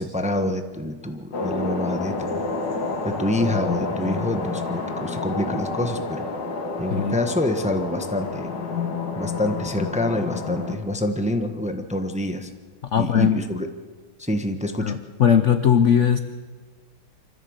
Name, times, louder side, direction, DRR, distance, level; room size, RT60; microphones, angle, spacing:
voice 1, 0.0-2.4 3.0-6.3 6.8-8.5 9.2-12.5 13.0-13.7 14.2-14.9, left 1 dB, 5° right, 6 dB, 0.7 m, -26 dB
sound 1, 1.3-10.8, left 3 dB, 60° left, 2.7 m, -29 dB
voice 2, 12.9-13.4 14.8-16.2, left 8 dB, 75° left, 9 dB, 0.6 m, -19 dB
25.0 x 14.5 x 8.0 m, 1.4 s
omnidirectional pair, 2.3 m